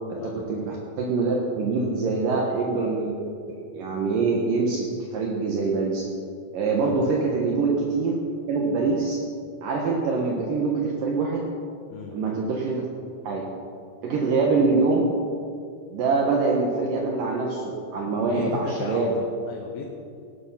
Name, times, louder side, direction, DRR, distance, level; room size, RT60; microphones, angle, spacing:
voice 1, 0.1-3.1 3.7-6.0 6.5-8.1 8.5-9.2 9.6-11.4 12.1-12.9 13.2-13.5 14.0-15.1 15.9-19.1, right 4 dB, 65° right, -1 dB, 2.8 m, -24 dB
voice 2, 18.3-19.9, left 5 dB, 75° left, 0 dB, 3.0 m, -36 dB
17.0 x 12.5 x 5.8 m, 2.4 s
omnidirectional pair, 4.5 m